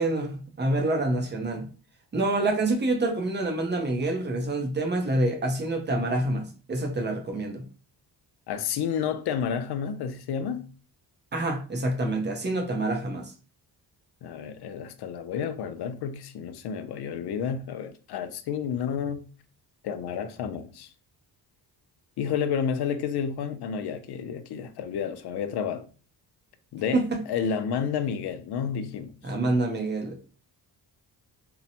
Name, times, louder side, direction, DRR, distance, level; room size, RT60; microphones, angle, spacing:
voice 1, 0.0-1.7 2.1-7.6 11.3-13.3 26.9-27.2 29.2-30.2, right 2 dB, 25° right, 0.6 m, -27 dB
voice 2, 8.5-10.6 14.2-19.2 19.8-20.9 22.2-25.8 26.7-29.1, left 7 dB, 65° left, 0.5 m, -30 dB
2.8 x 2.1 x 2.7 m
cardioid pair, 125°, 42 cm